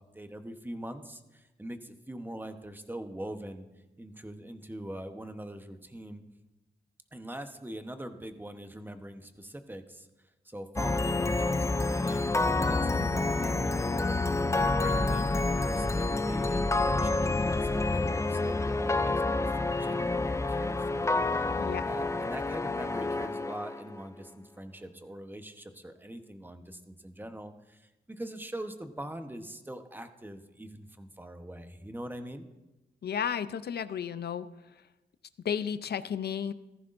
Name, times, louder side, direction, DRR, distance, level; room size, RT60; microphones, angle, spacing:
voice 1, 0.0-3.7 4.0-6.2 7.1-10.1 10.4-19.1 19.4-21.1 21.8-32.5, right 1 dB, 10° right, 7 dB, 1.0 m, -42 dB
sound 1, 10.8-24.0, left 2 dB, 15° left, 0.4 m, -28 dB
voice 2, 33.0-34.5 35.4-36.5, left 8 dB, 65° left, 13 dB, 0.6 m, -33 dB
15.5 x 14.0 x 2.6 m, 1.0 s
cardioid pair, 80°, 18 cm